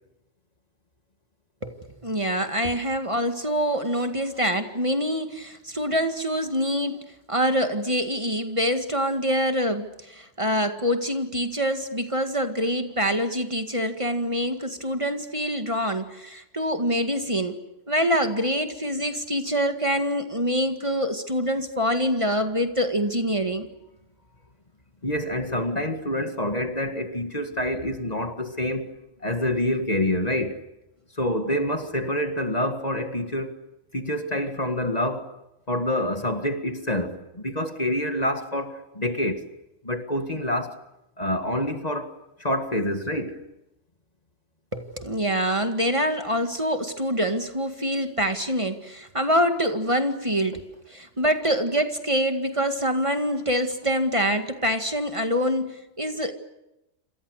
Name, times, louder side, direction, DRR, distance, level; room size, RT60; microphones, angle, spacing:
voice 1, 1.6-7.0 7.3-17.6 17.9-23.7 44.7-50.6 50.9-56.3, equal, 25° right, 2.0 m, -25 dB
voice 2, 25.0-28.9 29.2-30.6 31.1-33.6 33.9-35.3 35.7-39.5 39.8-40.8 41.2-43.4, left 1 dB, 35° left, 2.1 m, -27 dB
28.5 x 26.5 x 6.5 m
omnidirectional pair, 1.2 m